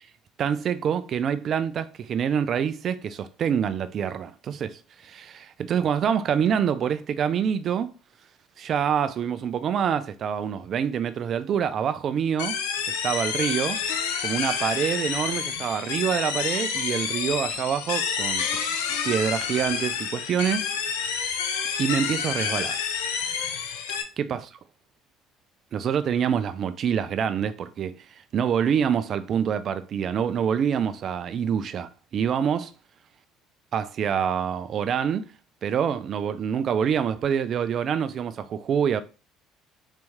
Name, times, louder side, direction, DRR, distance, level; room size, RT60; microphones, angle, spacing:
voice 1, 0.4-7.9 8.6-12.6 12.9-13.8 14.2-18.5 19.0-21.3 21.8-22.8 24.2-24.4 25.7-28.0 28.3-32.7 33.7-35.3 35.6-39.0, right 8 dB, 50° right, 0.4 m, -26 dB
sound 1, 12.4-24.0, left 7 dB, 80° left, 0.5 m, -29 dB
4.1 x 3.0 x 3.5 m
hypercardioid pair, 60°, 0 cm